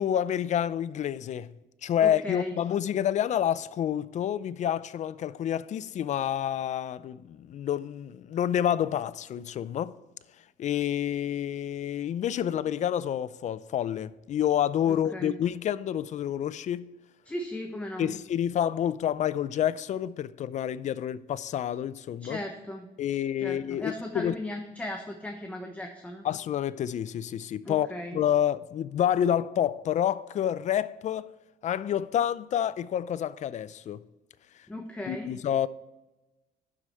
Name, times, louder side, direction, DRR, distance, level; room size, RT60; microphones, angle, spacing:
voice 1, 0.0-1.5 1.8-10.0 10.6-16.9 18.0-22.4 23.0-24.3 26.2-27.9 28.1-31.3 31.6-34.0 35.1-35.7, left 10 dB, 45° left, 0.4 m, -28 dB
voice 2, 2.0-2.6 14.9-15.3 17.2-18.1 22.2-26.3 27.6-28.2 34.7-35.3, left 1 dB, 10° left, 0.9 m, -37 dB
11.5 x 4.9 x 4.3 m
cardioid pair, 110°, 17 cm